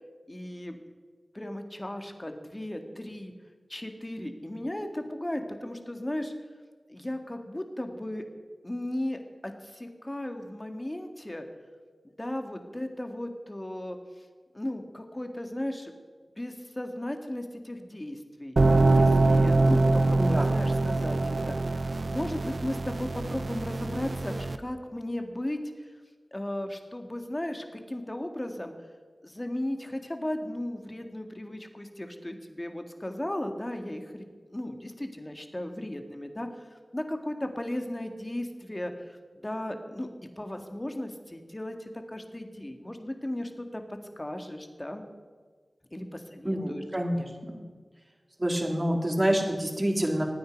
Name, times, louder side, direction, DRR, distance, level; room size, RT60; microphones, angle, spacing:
voice 1, 0.3-0.8 1.3-3.3 3.7-6.3 6.9-8.3 8.6-11.4 12.2-14.3 14.5-15.9 16.3-18.6 18.9-25.9 26.3-28.7 29.2-40.1 40.4-45.0 45.9-46.8, left 1 dB, 25° left, 5 dB, 2.0 m, -36 dB
sound 1, 18.6-24.6, right 2 dB, 70° right, 0.8 m, -24 dB
voice 2, 20.2-20.5 46.4-47.6 48.4-50.2, equal, 30° right, 1 dB, 3.1 m, -27 dB
22.5 x 9.5 x 5.3 m, 1.5 s
cardioid pair, 40°, 0 cm